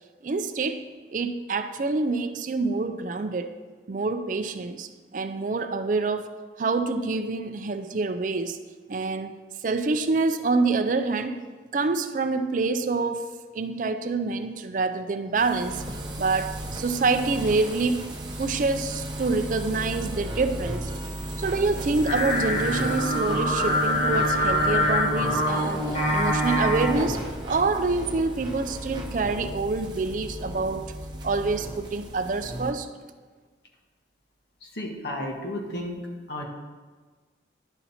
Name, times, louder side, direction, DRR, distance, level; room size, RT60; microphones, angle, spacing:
voice 1, 0.2-0.8 1.1-3.5 3.9-6.3 6.6-8.6 8.9-9.4 9.6-11.4 11.7-13.3 13.5-15.8 16.2-18.1 18.4-20.9 21.4-27.2 27.5-30.9 31.2-32.9, right 3 dB, 45° right, 9 dB, 0.4 m, -26 dB
sound 1, 15.3-32.7, right 1 dB, 25° right, 0.8 m, -35 dB
Singing, 22.1-27.2, left 1 dB, 40° left, 1.6 m, -24 dB
voice 2, 34.6-36.0 36.3-36.4, left 1 dB, 65° left, 0 dB, 1.3 m, -33 dB
11.0 x 4.2 x 4.2 m, 1.4 s
head